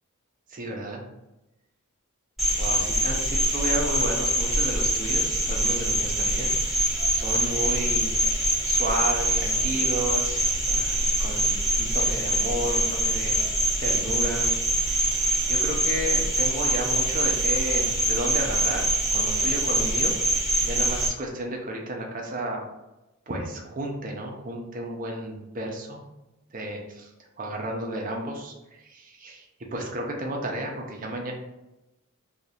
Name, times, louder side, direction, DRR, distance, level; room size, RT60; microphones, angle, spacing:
voice 1, 0.5-1.0 2.6-6.9 7.1-8.1 8.4-13.4 13.8-14.5 15.5-20.1 20.6-22.6 23.3-26.0 26.5-27.1 27.4-31.3, right 1 dB, 40° right, 0 dB, 0.7 m, -32 dB
Cricket, 2.4-21.1, right 1 dB, ahead, 1.3 m, -24 dB
2.8 x 2.5 x 4.2 m, 0.97 s
head